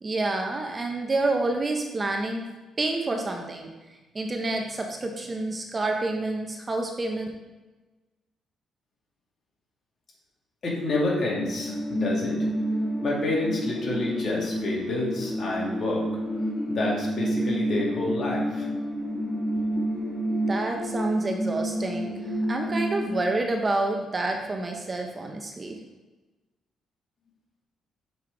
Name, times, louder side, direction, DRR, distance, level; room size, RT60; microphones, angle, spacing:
voice 1, 0.0-2.4 2.8-3.7 4.1-7.3 20.5-22.2 22.5-25.8, right 2 dB, 30° right, 3 dB, 0.9 m, -28 dB
voice 2, 10.6-12.4 13.0-16.0 16.7-18.7, left 2 dB, 50° left, -4 dB, 2.3 m, -28 dB
sound 1, 11.3-23.2, equal, 10° left, 1.4 m, -29 dB
6.5 x 5.5 x 3.5 m, 1.1 s
cardioid pair, 90°, 0 cm